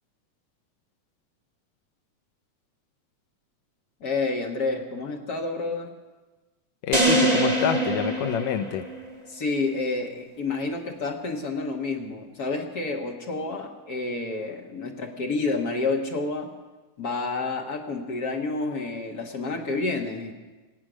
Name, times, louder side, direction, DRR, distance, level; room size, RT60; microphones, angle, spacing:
voice 1, 4.0-5.9 9.3-16.5 17.0-20.3, left 3 dB, 40° left, 1 dB, 1.5 m, -29 dB
voice 2, 6.8-8.8, left 8 dB, 75° left, 10 dB, 1.9 m, -27 dB
sound 1, 6.9-9.2, right 1 dB, 15° right, 1.5 m, -23 dB
25.0 x 8.5 x 6.3 m, 1.2 s
omnidirectional pair, 3.5 m